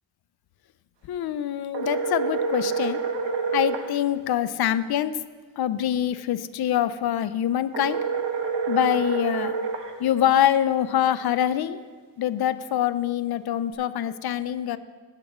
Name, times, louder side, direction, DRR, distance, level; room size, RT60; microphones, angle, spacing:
voice 1, 1.1-3.0 3.5-5.1 5.6-8.0 8.7-9.5 10.0-11.9 12.2-14.8, left 11 dB, 60° left, 13 dB, 0.6 m, -24 dB
sound 1, 1.7-3.9 7.7-9.9, right 5 dB, 80° right, 1.1 m, -27 dB
16.5 x 7.6 x 3.0 m, 1.5 s
cardioid pair, 115°, 42 cm